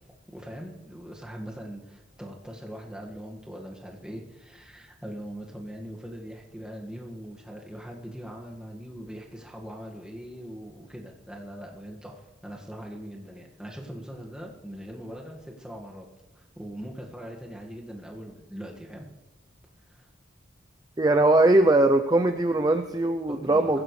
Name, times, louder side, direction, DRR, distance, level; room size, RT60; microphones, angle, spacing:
voice 1, 0.3-16.1 16.4-19.1 19.9-20.1 23.3-23.8, equal, 5° right, -1 dB, 1.7 m, -41 dB
voice 2, 21.0-23.8, right 2 dB, 20° right, 6 dB, 0.5 m, -20 dB
23.0 x 15.5 x 3.2 m, 1.1 s
head